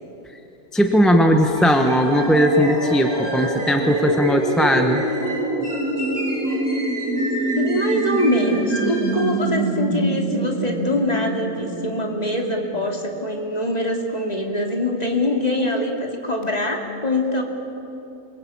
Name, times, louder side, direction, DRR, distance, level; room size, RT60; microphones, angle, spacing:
voice 1, 0.7-5.0, equal, ahead, 4 dB, 1.0 m, -18 dB
sound 1, 1.2-12.9, right 2 dB, 80° right, 3.0 m, -26 dB
sound 2, 1.6-9.4, right 1 dB, 25° right, 5.2 m, -34 dB
voice 2, 7.6-17.4, left 1 dB, 25° left, 1 dB, 2.7 m, -23 dB
27.5 x 21.5 x 8.7 m, 3.0 s
omnidirectional pair, 1.5 m